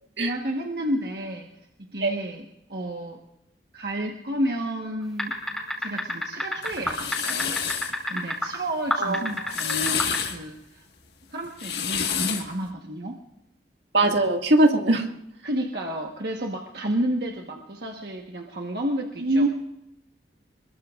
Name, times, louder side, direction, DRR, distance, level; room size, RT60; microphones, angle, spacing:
voice 1, 0.2-1.5 1.9-2.4 2.7-3.2 3.7-5.3 5.8-10.8 11.3-13.2 15.4-19.5, right 1 dB, 65° right, 1 dB, 1.3 m, -31 dB
sound 1, 5.2-8.5 8.9-10.2, left 1 dB, ahead, 4.3 m, -27 dB
sound 2, 6.6-7.9 9.3-10.4 11.4-12.5, left 8 dB, 70° left, 1.6 m, -29 dB
voice 2, 9.0-9.3 13.9-15.0 19.2-19.5, right 1 dB, 80° right, 3 dB, 1.9 m, -20 dB
26.5 x 22.0 x 2.5 m, 0.83 s
head